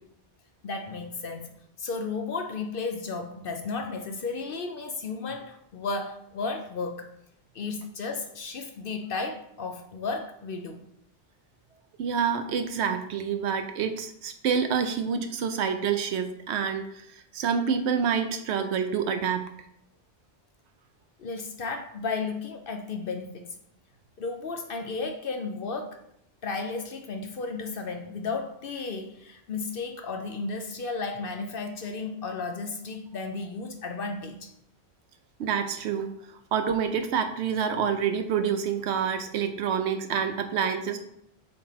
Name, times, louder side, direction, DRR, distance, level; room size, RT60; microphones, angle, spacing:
voice 1, 0.6-1.5 1.8-7.1 7.5-10.8 21.2-23.6 24.2-26.0 26.4-34.5, left 4 dB, 60° left, 6 dB, 0.8 m, -34 dB
voice 2, 12.0-19.5 35.4-36.1 36.5-41.0, right 7 dB, 85° right, 7 dB, 0.9 m, -27 dB
6.5 x 4.2 x 4.2 m, 0.77 s
omnidirectional pair, 1.1 m